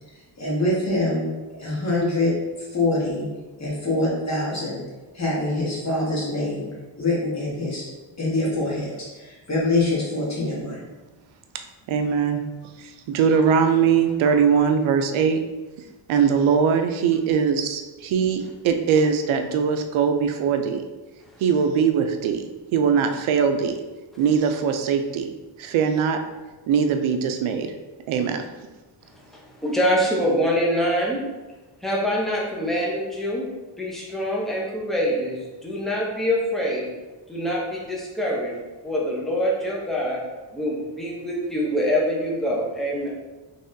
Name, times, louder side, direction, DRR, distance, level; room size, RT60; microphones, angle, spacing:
voice 1, 0.4-1.3 1.6-3.3 3.6-4.8 5.1-6.7 6.9-7.8 8.2-10.8, left 2 dB, 35° left, -5 dB, 1.4 m, -24 dB
voice 2, 11.9-12.4 12.8-15.4 16.1-20.8 21.4-23.8 24.2-26.2 26.7-27.7 28.1-28.4, right 6 dB, 85° right, 6 dB, 0.6 m, -21 dB
voice 3, 29.6-31.2 31.8-33.5 33.8-36.9 37.3-38.5 38.8-40.2 40.5-43.1, equal, ahead, -4 dB, 0.7 m, -24 dB
4.0 x 3.5 x 2.6 m, 1.2 s
cardioid pair, 135°, 47 cm